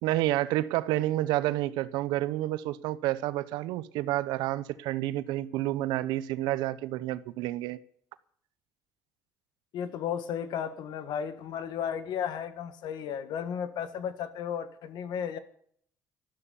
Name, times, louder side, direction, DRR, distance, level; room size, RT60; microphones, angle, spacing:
voice 1, 0.0-7.8, right 15 dB, 85° right, 0.8 m, -29 dB
voice 2, 9.7-15.4, left 8 dB, 75° left, 1.6 m, -34 dB
13.0 x 12.5 x 7.1 m
supercardioid pair, 70°, 7 cm